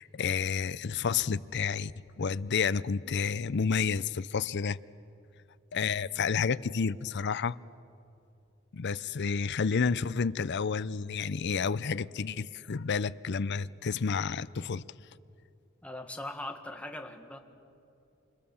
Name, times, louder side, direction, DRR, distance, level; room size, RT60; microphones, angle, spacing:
voice 1, 0.0-4.8 5.7-7.6 8.7-14.8, left 5 dB, 55° left, 0.6 m, -30 dB
voice 2, 15.8-17.4, left 1 dB, 5° left, 1.7 m, -40 dB
27.5 x 27.5 x 7.2 m
head